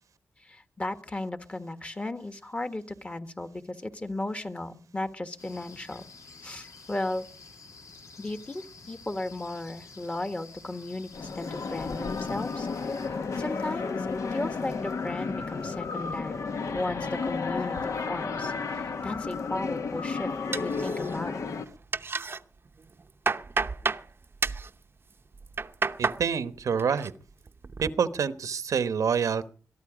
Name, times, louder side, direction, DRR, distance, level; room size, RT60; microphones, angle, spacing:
voice 1, 0.4-6.0 6.4-7.2 8.2-13.1 13.4-14.1 14.3-21.4 26.9-27.0, left 2 dB, 25° left, 9 dB, 1.5 m, -35 dB
sound 1, 5.4-13.1, left 4 dB, 85° left, 2.7 m, -50 dB
sound 2, 11.1-21.7, left 4 dB, 65° left, 1.4 m, -32 dB
sound 3, 20.5-21.4 21.7-22.4 22.8-24.1 24.4-24.7 25.3-26.2 26.6-27.1 27.5-27.9, right 4 dB, 45° right, 0.7 m, -30 dB
voice 2, 26.0-27.1 27.8-29.5, right 6 dB, 80° right, 12 dB, 1.0 m, -27 dB
22.0 x 13.0 x 5.0 m, 0.42 s
wide cardioid pair, 90°, 6 cm